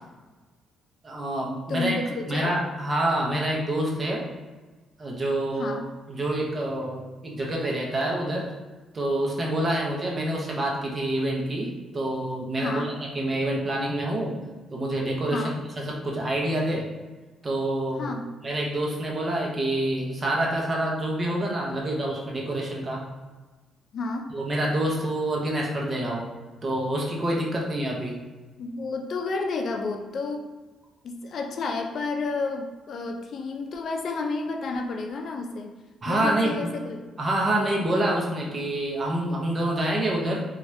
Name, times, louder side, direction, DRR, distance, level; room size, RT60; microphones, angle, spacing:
voice 1, 1.0-2.0 2.3-4.3 5.0-5.8 6.1-8.5 8.9-14.3 14.7-15.4 15.8-16.9 17.4-18.1 18.4-23.0 24.3-26.3 26.6-28.2 36.0-36.7 37.2-40.5, right 1 dB, 30° right, -2 dB, 0.7 m, -27 dB
voice 2, 1.7-2.5 5.6-5.8 12.6-12.9 15.3-15.6 18.0-18.3 23.9-24.3 28.6-30.5 31.0-35.7 36.1-37.1, left 3 dB, 55° left, 3 dB, 0.4 m, -31 dB
2.7 x 2.3 x 3.2 m, 1.2 s
cardioid pair, 125°, 0 cm